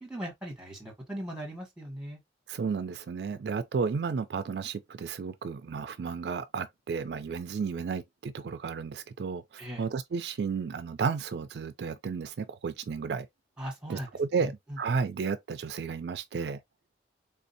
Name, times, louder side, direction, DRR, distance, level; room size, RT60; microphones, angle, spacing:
voice 1, 0.0-2.2 9.6-9.8 13.6-14.1 14.4-14.8, equal, 5° right, 1.2 m, -39 dB
voice 2, 2.5-13.3 13.9-16.6, right 5 dB, 70° right, 0.4 m, -33 dB
3.7 x 2.6 x 2.6 m
head